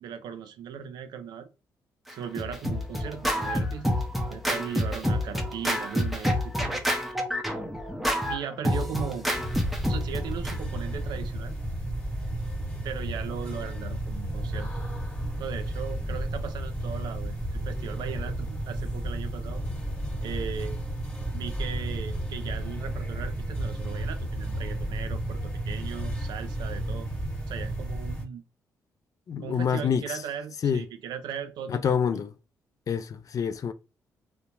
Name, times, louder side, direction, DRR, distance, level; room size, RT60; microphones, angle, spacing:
voice 1, 0.0-1.5 2.1-4.0 4.3-6.9 8.3-9.3 9.9-11.6 12.8-14.7 15.4-19.6 20.2-20.8 21.3-27.1 27.5-28.4 29.4-32.2, right 8 dB, 75° right, 0.5 m, -38 dB
Scratching (performance technique), 2.1-10.6, equal, ahead, 0.8 m, -28 dB
sound 1, 9.3-28.2, right 1 dB, 15° left, 1.5 m, -32 dB
voice 2, 29.3-30.0 30.6-30.8 31.7-32.3 32.9-33.7, left 7 dB, 50° left, 0.4 m, -26 dB
2.8 x 2.1 x 2.5 m
supercardioid pair, 55°, 7 cm